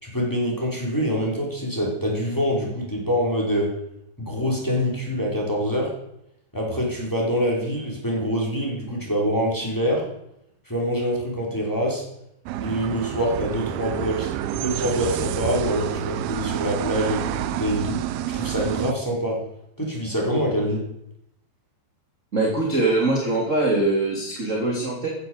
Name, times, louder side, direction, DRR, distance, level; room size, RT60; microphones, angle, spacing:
voice 1, 0.0-3.7 4.2-6.0 6.5-10.1 10.7-12.0 12.6-19.4 19.8-20.9, equal, 5° left, -3 dB, 4.5 m, -25 dB
sound 1, 12.5-18.9, right 12 dB, 90° right, 2.1 m, -29 dB
voice 2, 22.3-25.1, right 2 dB, 20° right, -2 dB, 2.4 m, -22 dB
15.5 x 10.5 x 8.1 m, 0.78 s
omnidirectional pair, 5.4 m